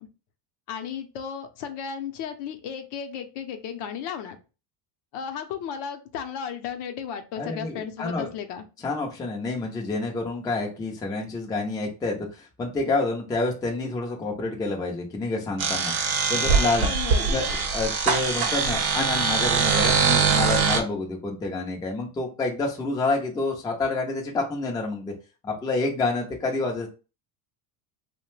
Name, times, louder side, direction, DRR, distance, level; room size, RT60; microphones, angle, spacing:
voice 1, 0.7-4.4 5.1-8.6 16.8-17.3, left 7 dB, 60° left, 7 dB, 0.6 m, -34 dB
voice 2, 7.4-8.3 8.8-15.9 16.3-16.9 17.3-25.1 25.4-26.9, left 3 dB, 10° left, 0 dB, 0.4 m, -28 dB
sound 1, 15.6-20.8, right 5 dB, 55° right, 0.9 m, -22 dB
2.8 x 2.1 x 3.1 m, 0.32 s
cardioid pair, 130°, 47 cm